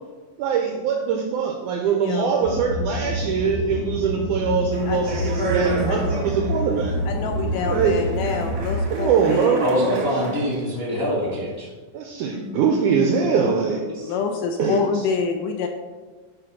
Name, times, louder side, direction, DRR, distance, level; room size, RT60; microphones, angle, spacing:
voice 1, 0.4-6.9 7.7-8.0 8.9-9.9 11.9-13.8 14.6-14.8, right 6 dB, 90° right, 2 dB, 1.8 m, -22 dB
voice 2, 2.0-2.4 4.9-5.1 5.4-6.1 7.1-9.6 13.9-15.7, left 5 dB, 80° left, 4 dB, 2.0 m, -27 dB
sound 1, 2.4-8.8, equal, 60° left, 1.6 m, -27 dB
Speech, 4.7-10.5, right 3 dB, 70° right, 1.1 m, -32 dB
voice 3, 9.6-11.7 13.9-14.1 14.9-15.0, left 1 dB, 45° left, -5 dB, 0.7 m, -25 dB
9.3 x 3.5 x 5.9 m, 1.3 s
omnidirectional pair, 4.2 m